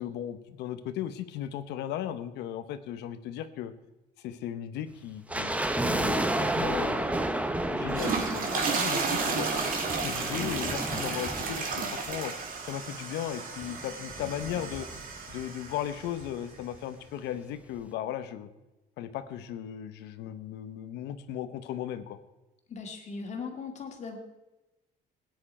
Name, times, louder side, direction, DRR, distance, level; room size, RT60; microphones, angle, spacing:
voice 1, 0.0-3.7 4.2-5.5 5.8-9.5 9.9-12.3 12.7-14.9 15.3-18.5 19.0-22.2, left 11 dB, 85° left, 11 dB, 1.0 m, -36 dB
sound 1, 5.3-12.6 12.8-12.9 13.6-15.4 15.7-15.8 16.0-16.3 16.7-16.8, right 1 dB, 10° right, 0.9 m, -32 dB
sound 2, 7.8-16.1, right 4 dB, 55° right, 2.3 m, -33 dB
voice 2, 22.7-24.2, left 5 dB, 45° left, 4 dB, 2.2 m, -38 dB
17.5 x 9.6 x 4.4 m, 1.0 s
cardioid pair, 110°, 17 cm